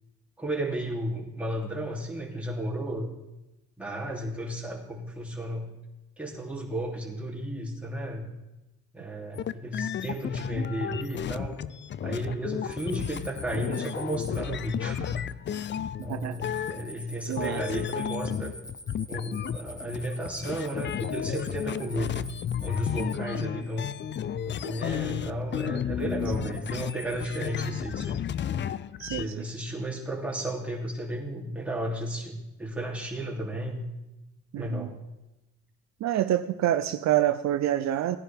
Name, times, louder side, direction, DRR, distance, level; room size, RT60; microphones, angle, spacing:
voice 1, 0.4-3.1 3.8-5.7 6.2-8.2 8.9-11.6 12.0-15.3 16.0-18.5 19.1-22.2 22.6-23.9 24.5-28.3 29.1-33.9 34.6-35.0, right 1 dB, 5° right, -3 dB, 2.9 m, -33 dB
sound 1, 9.3-17.1 17.4-29.2, left 9 dB, 40° left, 0.4 m, -33 dB
sound 2, 12.7-14.4 16.0-23.2 26.0-27.5, left 1 dB, 10° left, 1.0 m, -46 dB
voice 2, 16.0-16.3 17.3-17.6 29.0-29.4 34.5-34.9 36.0-38.2, right 12 dB, 65° right, 9 dB, 0.6 m, -27 dB
16.5 x 10.5 x 3.5 m, 0.98 s
cardioid pair, 90°, 30 cm